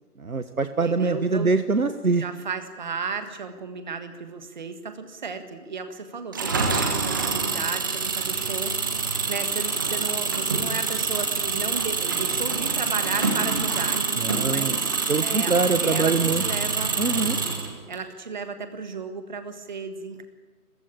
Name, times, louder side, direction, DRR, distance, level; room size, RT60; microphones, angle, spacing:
voice 1, 0.2-2.2 14.2-14.8 15.1-16.4 17.0-17.4, right 4 dB, 65° right, 9 dB, 1.3 m, -24 dB
voice 2, 0.8-1.5 2.2-8.7 9.3-16.9 17.9-20.2, right 5 dB, 30° right, 9 dB, 1.6 m, -34 dB
Engine, 6.3-18.0, right 4 dB, 15° right, 1.2 m, -26 dB
29.5 x 15.0 x 8.7 m, 1.4 s
figure-of-eight pair, 150°, 47 cm